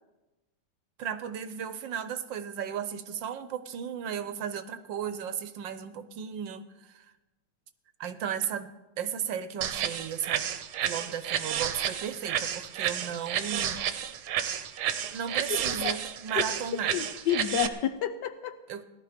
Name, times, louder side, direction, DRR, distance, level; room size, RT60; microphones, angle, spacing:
voice 1, 1.0-7.1 8.0-8.7 9.0-10.5 10.8-13.8 15.1-17.0 18.7-18.8, right 8 dB, 70° right, 12 dB, 1.4 m, -35 dB
sound 1, 9.6-17.7, right 9 dB, 85° right, 1.7 m, -31 dB
voice 2, 15.7-16.0 16.4-16.5 16.9-18.6, left 10 dB, 70° left, 10 dB, 1.1 m, -30 dB
17.5 x 12.0 x 5.1 m, 1.1 s
omnidirectional pair, 2.3 m